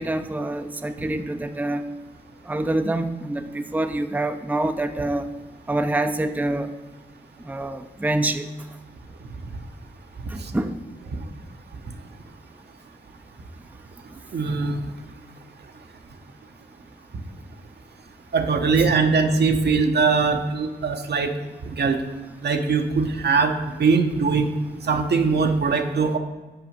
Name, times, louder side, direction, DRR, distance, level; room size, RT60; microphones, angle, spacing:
voice 1, 0.0-1.8 2.5-5.3 5.7-6.7 7.5-8.5 10.3-10.8, right 2 dB, 10° right, 8 dB, 0.5 m, -26 dB
voice 2, 14.3-14.9 18.3-21.3 21.6-22.0 22.4-24.5 24.8-26.2, right 4 dB, 65° right, 5 dB, 0.9 m, -21 dB
6.0 x 4.8 x 6.5 m, 1.2 s
cardioid pair, 45°, 18 cm